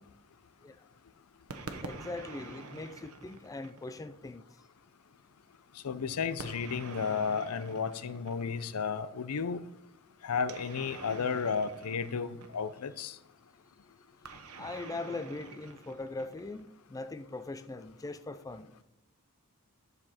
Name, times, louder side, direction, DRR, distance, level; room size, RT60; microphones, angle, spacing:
sound 1, 1.5-4.2 6.4-8.8 10.4-12.9 14.2-16.7, right 3 dB, 75° right, 1.1 m, -47 dB
voice 1, 1.8-4.5 14.6-18.7, left 2 dB, 15° left, 10 dB, 0.4 m, -41 dB
voice 2, 5.8-9.6 10.2-13.2, left 6 dB, 85° left, 14 dB, 0.6 m, -33 dB
10.5 x 6.7 x 4.2 m, 0.94 s
head